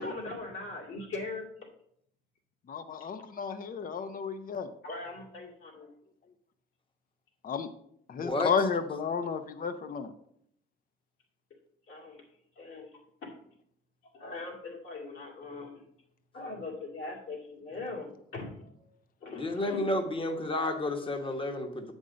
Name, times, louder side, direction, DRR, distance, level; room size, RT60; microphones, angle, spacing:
voice 1, 0.0-1.5 4.8-5.9 11.9-12.2 12.6-13.3 14.1-15.8 16.3-18.9 19.2-19.8, left 3 dB, 70° left, -2 dB, 2.7 m, -41 dB
voice 2, 2.7-4.7 7.4-7.7 8.1-10.1, left 6 dB, 45° left, 10 dB, 0.7 m, -32 dB
voice 3, 8.1-8.5 19.3-21.9, left 2 dB, 25° left, 5 dB, 1.2 m, -31 dB
7.4 x 5.4 x 5.2 m, 0.70 s
cardioid pair, 90°, 20 cm